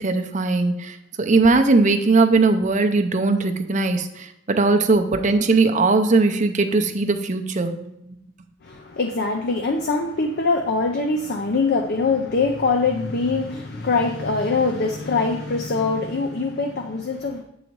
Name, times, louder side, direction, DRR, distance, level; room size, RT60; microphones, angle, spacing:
voice 1, 0.0-7.9, right 3 dB, 40° right, 7 dB, 0.6 m, -19 dB
voice 2, 8.6-17.4, left 3 dB, 55° left, 2 dB, 0.6 m, -23 dB
8.3 x 4.0 x 4.6 m, 0.80 s
head